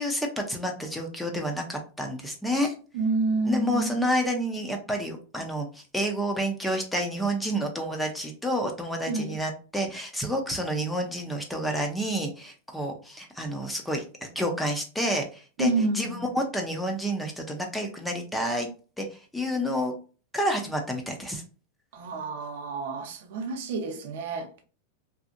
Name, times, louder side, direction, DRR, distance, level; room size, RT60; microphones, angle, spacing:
voice 1, 0.0-2.7 3.5-14.0 14.4-18.7 19.0-20.0 20.3-21.4, equal, 5° left, 0.5 m, -29 dB
voice 2, 2.9-3.9 9.1-9.4 15.6-16.2 21.9-24.5, right 3 dB, 65° right, 0.6 m, -29 dB
2.7 x 2.4 x 2.4 m
supercardioid pair, 135°, 0 cm